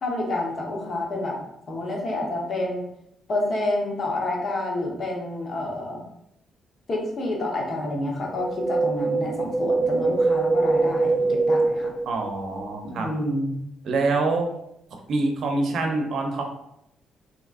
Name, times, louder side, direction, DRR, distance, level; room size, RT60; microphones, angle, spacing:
voice 1, 0.0-1.4 1.7-2.8 3.3-6.0 6.9-11.9 12.8-13.6, left 1 dB, 50° left, -1 dB, 0.9 m, -28 dB
Wind, 8.4-12.7 13.0-13.1, right 3 dB, 15° right, 0.3 m, -23 dB
voice 2, 12.1-13.1 13.8-14.5 15.1-16.4, right 3 dB, 65° right, 2 dB, 0.6 m, -25 dB
3.4 x 2.8 x 2.4 m, 0.79 s
cardioid pair, 90°, 0 cm